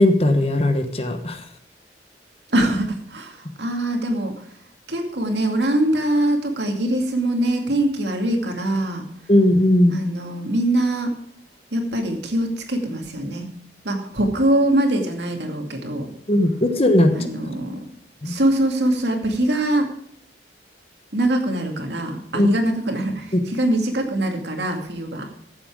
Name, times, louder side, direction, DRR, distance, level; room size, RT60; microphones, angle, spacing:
voice 1, 0.0-1.4 9.3-10.0 16.3-17.1 18.2-18.3 22.3-22.5 23.3-23.4, left 1 dB, 35° left, 7 dB, 1.1 m, -17 dB
voice 2, 2.5-4.4 4.9-9.0 9.9-11.1 11.7-13.5 13.8-16.1 17.1-17.8 18.2-19.9 21.1-25.2, right 1 dB, 75° right, 3 dB, 2.3 m, -23 dB
15.0 x 7.5 x 4.9 m, 0.66 s
head